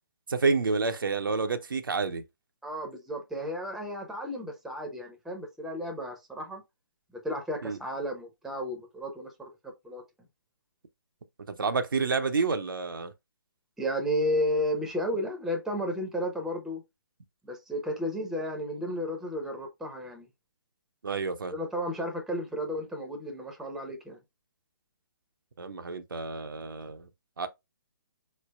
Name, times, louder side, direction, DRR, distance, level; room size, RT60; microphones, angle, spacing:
voice 1, 0.3-2.2 7.6-7.8 11.5-13.1 21.0-21.5 25.6-27.1 27.4-27.5, right 4 dB, 80° right, 0.6 m, -29 dB
voice 2, 2.6-6.6 7.2-9.5 9.8-10.0 13.8-16.8 17.4-20.3 21.5-24.2, equal, 5° right, 0.7 m, -33 dB
3.9 x 3.2 x 2.2 m
hypercardioid pair, 140°, 11 cm